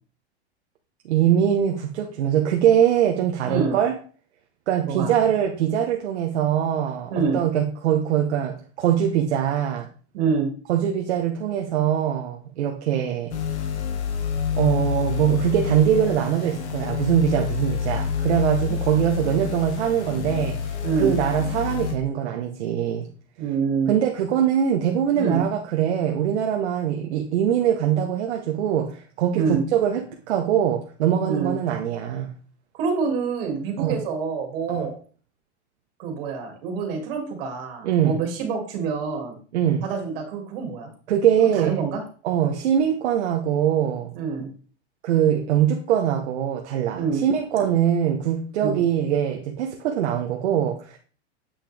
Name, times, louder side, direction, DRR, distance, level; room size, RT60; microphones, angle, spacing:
voice 1, 1.0-3.9 4.7-9.9 10.7-13.4 14.6-23.1 23.9-32.4 33.8-34.0 34.7-34.9 37.8-38.2 39.5-39.9 41.1-41.9 42.2-44.1 45.0-51.0, right 9 dB, 70° right, 1.1 m, -22 dB
voice 2, 3.4-3.8 4.8-5.1 7.1-7.4 10.1-10.5 20.8-21.1 23.4-23.9 25.1-25.4 29.3-29.6 31.2-31.5 32.7-35.0 36.0-39.4 39.8-40.9 41.5-42.0 44.1-44.5 47.0-47.2 48.6-48.8, right 5 dB, 55° right, 2.5 m, -26 dB
sound 1, 13.3-21.9, left 7 dB, 80° left, 1.7 m, -28 dB
8.4 x 5.9 x 3.4 m
supercardioid pair, 150°, 34 cm